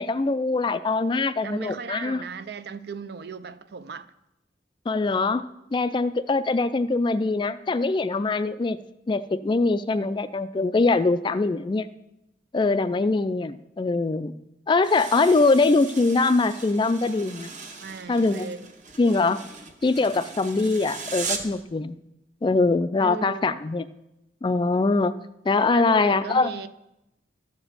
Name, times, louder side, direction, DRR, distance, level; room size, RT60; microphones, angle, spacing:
voice 1, 0.0-2.2 4.9-8.8 9.1-11.9 12.5-14.4 14.7-17.5 18.1-18.5 19.0-19.4 19.8-22.0 22.4-23.9 24.4-25.1 25.5-26.5, left 3 dB, 25° left, 0.3 m, -23 dB
voice 2, 1.4-4.1 17.8-18.7 23.0-23.6 25.7-26.7, right 5 dB, 60° right, 0.5 m, -37 dB
sound 1, 14.8-21.6, right 5 dB, 40° right, 1.1 m, -38 dB
12.5 x 5.1 x 7.2 m
head